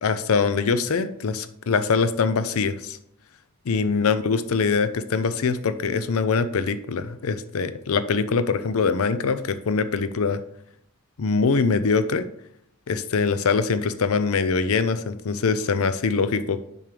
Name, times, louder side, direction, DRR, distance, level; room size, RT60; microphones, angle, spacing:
voice 1, 0.0-3.0 3.7-10.4 11.2-12.2 12.9-16.6, left 5 dB, 65° left, 12 dB, 0.5 m, -23 dB
7.1 x 5.9 x 3.3 m, 0.71 s
head